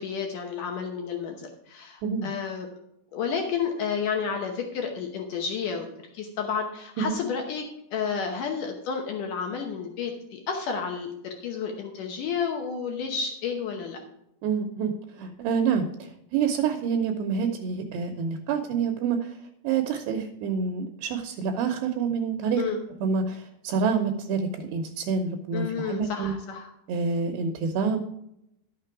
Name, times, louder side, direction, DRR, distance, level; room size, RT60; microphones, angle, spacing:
voice 1, 0.0-2.7 3.1-5.9 6.1-7.7 7.9-14.0 22.6-22.8 25.5-26.7, left 6 dB, 85° left, 3 dB, 1.8 m, -31 dB
voice 2, 14.4-19.4 19.6-22.6 23.0-26.3 26.9-28.0, right 6 dB, 75° right, 4 dB, 2.8 m, -27 dB
12.5 x 6.7 x 4.7 m, 0.78 s
omnidirectional pair, 5.2 m